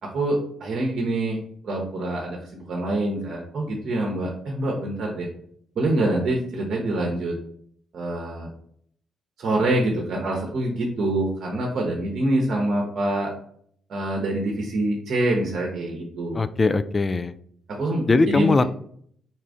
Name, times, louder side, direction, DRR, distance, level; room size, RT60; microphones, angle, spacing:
voice 1, 0.0-5.3 5.8-7.3 7.9-8.5 9.4-13.3 13.9-16.4 17.7-18.6, right 1 dB, 60° right, 0 dB, 0.8 m, -25 dB
voice 2, 16.3-17.3 18.1-18.6, left 3 dB, 35° left, 13 dB, 0.3 m, -20 dB
4.2 x 2.4 x 3.5 m, 0.63 s
hypercardioid pair, 45°, 0 cm